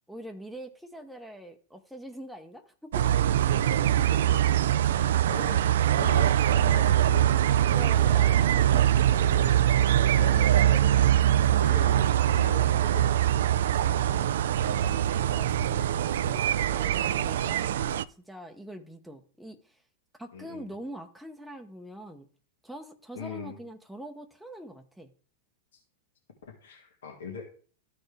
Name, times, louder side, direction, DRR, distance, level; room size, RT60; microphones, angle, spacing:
voice 1, 0.1-3.1 7.7-8.9 14.6-15.9 16.2-19.8 20.2-22.3 22.6-25.1, right 1 dB, ahead, 2 dB, 0.7 m, -44 dB
sound 1, 2.9-18.0, right 11 dB, 75° right, 0.3 m, -23 dB
voice 2, 3.8-8.0 9.1-13.2 13.8-14.3 20.3-20.7 23.1-23.6 25.7-25.8 26.5-27.4, left 5 dB, 85° left, 0 dB, 1.7 m, -41 dB
12.5 x 4.3 x 3.3 m, 0.43 s
hypercardioid pair, 130°, 0 cm